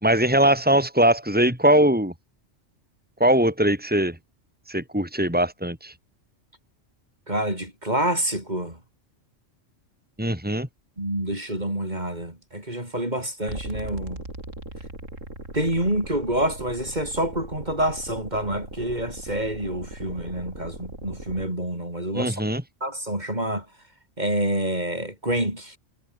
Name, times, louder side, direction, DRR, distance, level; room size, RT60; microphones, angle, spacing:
voice 1, 0.0-2.1 3.2-4.2 4.7-5.9 10.2-10.7 22.1-22.6, right 1 dB, 5° right, 5.2 m, -21 dB
voice 2, 7.3-8.7 11.0-14.2 15.5-22.4 22.8-23.6 24.2-25.8, right 1 dB, 35° right, 6.9 m, -27 dB
sound 1, 13.5-21.5, right 2 dB, 85° right, 7.1 m, -39 dB
omnidirectional pair, 1.3 m